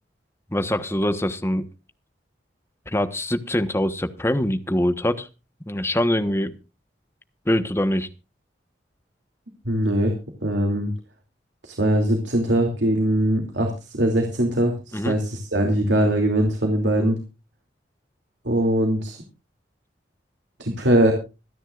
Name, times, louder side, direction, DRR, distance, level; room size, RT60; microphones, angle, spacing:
voice 1, 0.5-1.7 2.9-5.3 5.7-6.6 7.5-8.1 14.9-15.2, left 1 dB, 15° left, 9 dB, 1.1 m, -23 dB
voice 2, 9.7-10.1 10.4-10.9 11.6-17.2 18.4-19.2 20.6-21.1, right 1 dB, 85° right, 2 dB, 2.8 m, -21 dB
26.0 x 10.0 x 2.5 m, 0.30 s
head